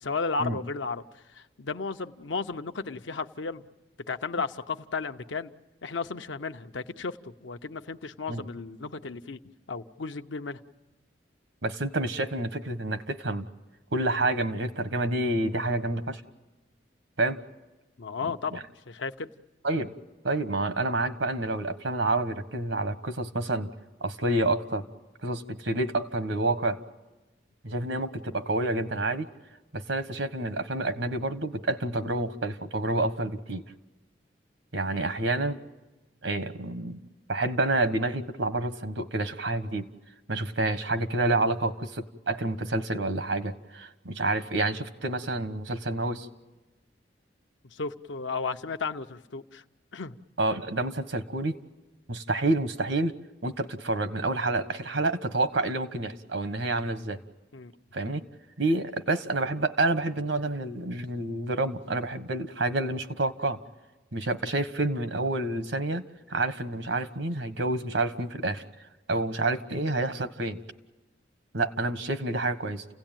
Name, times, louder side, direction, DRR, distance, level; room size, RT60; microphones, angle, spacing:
voice 1, 0.0-3.6 4.1-5.5 5.8-9.4 9.7-10.6 18.0-18.6 18.9-19.3 34.9-35.1 47.7-49.6 49.9-50.2 57.5-57.7, left 4 dB, 90° left, 8 dB, 0.8 m, -34 dB
voice 2, 11.6-13.4 13.9-16.2 17.2-17.4 18.5-18.6 19.6-19.9 20.2-23.7 24.0-24.8 25.2-26.8 27.6-29.3 29.7-33.6 34.7-35.6 36.2-37.0 37.3-39.9 40.3-46.3 50.4-51.6 52.1-53.2 53.4-57.2 57.9-58.2 58.6-63.6 64.1-66.0 66.3-68.6 69.1-70.6 71.5-72.8, right 2 dB, 85° right, 10 dB, 1.4 m, -28 dB
29.5 x 17.0 x 9.1 m, 1.2 s
head